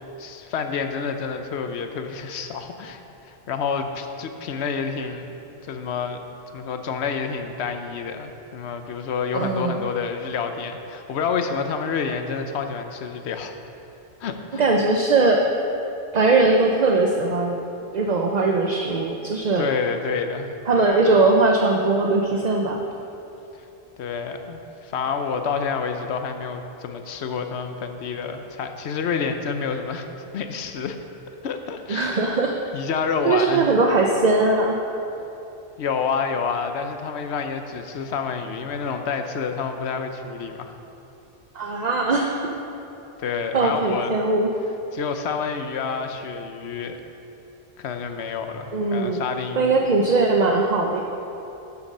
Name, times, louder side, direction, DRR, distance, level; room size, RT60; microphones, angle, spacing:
voice 1, 0.2-5.3 5.6-6.2 6.5-13.5 14.2-14.7 19.6-20.5 24.0-30.1 30.3-31.0 31.4-32.3 32.7-33.7 35.8-40.7 43.2-44.1 44.9-47.0 47.8-49.8, left 5 dB, 80° left, 6 dB, 1.0 m, -28 dB
voice 2, 9.3-9.8 14.6-15.5 16.1-17.6 17.9-19.7 20.7-22.8 31.9-32.6 33.2-34.8 41.5-42.5 43.5-44.5 48.7-49.2 49.5-51.0, right 3 dB, 45° right, 2 dB, 0.7 m, -20 dB
12.5 x 7.2 x 5.4 m, 3.0 s
omnidirectional pair, 1.1 m